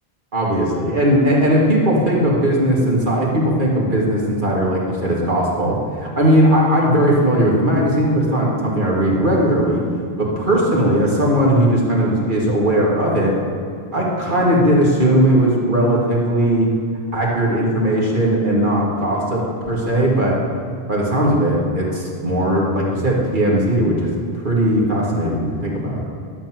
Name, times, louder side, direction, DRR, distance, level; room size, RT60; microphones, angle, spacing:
voice 1, 0.3-9.8 10.2-13.3 13.9-16.7 17.1-20.4 20.9-24.1 24.4-26.0, right 1 dB, 50° right, -4 dB, 2.1 m, -18 dB
12.0 x 4.0 x 7.6 m, 2.5 s
omnidirectional pair, 1.1 m